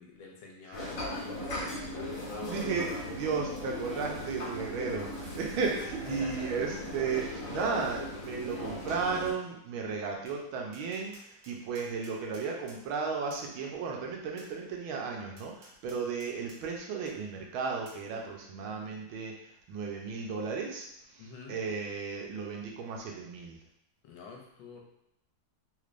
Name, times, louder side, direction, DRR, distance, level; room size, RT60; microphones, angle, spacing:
voice 1, 0.0-1.9 6.0-6.7 21.2-21.6 24.0-24.8, left 4 dB, 75° left, 0 dB, 1.4 m, -48 dB
sound 1, 0.7-9.3, left 1 dB, 50° left, 1.2 m, -38 dB
voice 2, 2.4-19.3 19.7-23.6, right 5 dB, 80° right, 0 dB, 1.5 m, -35 dB
Tap, 10.3-10.4 10.7-12.8 13.3-13.5 14.4-14.5 15.4-16.6 17.1-17.2 17.9-18.0, right 1 dB, 65° right, 1.5 m, -54 dB
3.6 x 3.2 x 2.5 m, 0.75 s
omnidirectional pair, 2.2 m